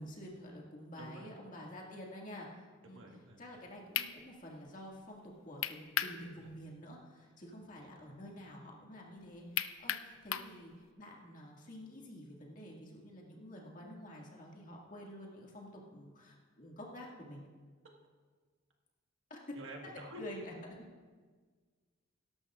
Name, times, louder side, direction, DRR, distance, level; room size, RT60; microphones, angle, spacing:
voice 1, 0.0-3.0 3.4-17.4 19.3-19.4 20.2-20.8, equal, 40° left, -2 dB, 2.0 m, -49 dB
voice 2, 1.0-1.3 2.9-3.4 6.4-6.5 7.6-7.9 19.5-20.2, right 1 dB, 65° right, 1 dB, 1.6 m, -50 dB
sound 1, 3.5-3.6 3.9-4.1 5.6-6.2 6.6-6.7 9.6-10.5, left 10 dB, 75° left, 0.5 m, -34 dB
17.5 x 13.0 x 2.5 m, 1.5 s
head